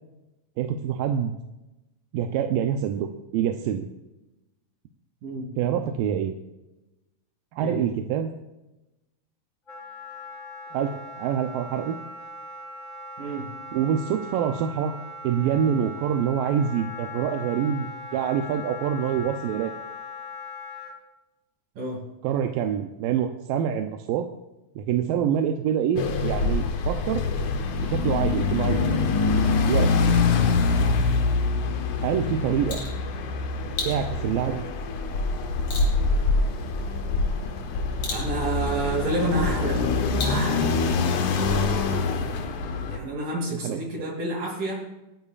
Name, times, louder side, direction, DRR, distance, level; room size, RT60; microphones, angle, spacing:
voice 1, 0.6-1.4 2.1-3.1 3.3-3.9 5.6-6.3 7.5-8.3 10.7-12.0 13.7-14.9 15.2-17.9 18.1-19.7 22.2-24.3 24.8-27.2 27.8-29.0 29.7-30.2 32.0-32.8 33.9-34.6 43.6-44.1, right 8 dB, 85° right, 4 dB, 2.5 m, -26 dB
voice 2, 5.2-5.5 7.6-7.8 13.2-13.5 21.8-22.1 38.1-39.8 40.2-41.0 42.9-44.9, right 2 dB, 70° right, -3 dB, 4.4 m, -29 dB
Wind instrument woodwind instrument, 9.7-20.9, left 3 dB, 25° left, 2.5 m, -39 dB
sound 1, 26.0-43.0, left 4 dB, 70° left, 2.1 m, -24 dB
sound 2, 32.5-40.9, left 3 dB, 45° left, 3.7 m, -39 dB
28.0 x 9.7 x 2.5 m, 0.99 s
omnidirectional pair, 4.0 m